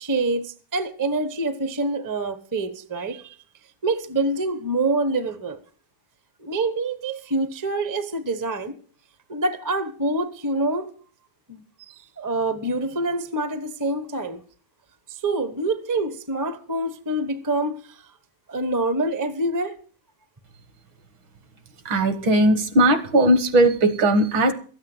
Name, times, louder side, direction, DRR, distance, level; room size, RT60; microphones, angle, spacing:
voice 1, 0.0-3.3 3.8-5.6 6.4-8.7 9.3-10.9 11.5-14.4 15.1-18.0 18.5-19.8, right 2 dB, 20° right, 0.4 m, -26 dB
voice 2, 21.9-24.5, right 1 dB, 70° right, 2.1 m, -18 dB
13.5 x 8.6 x 7.8 m
omnidirectional pair, 2.3 m